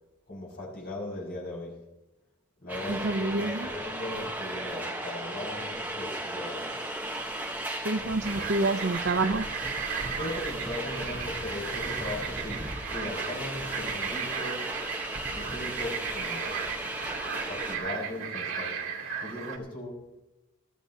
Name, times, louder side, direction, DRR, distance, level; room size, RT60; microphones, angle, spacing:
voice 1, 0.3-1.8 2.6-6.7 10.1-14.8 15.3-16.6 17.1-17.2 17.4-20.1, left 1 dB, 45° left, 6.0 m, -38 dB
sound 1, 2.7-17.8, right 1 dB, 10° right, 1.1 m, -36 dB
voice 2, 2.9-3.7 7.8-9.4, right 2 dB, 55° right, 0.7 m, -28 dB
sound 2, 8.2-19.6, right 6 dB, 80° right, 2.2 m, -36 dB
20.5 x 13.5 x 2.8 m
head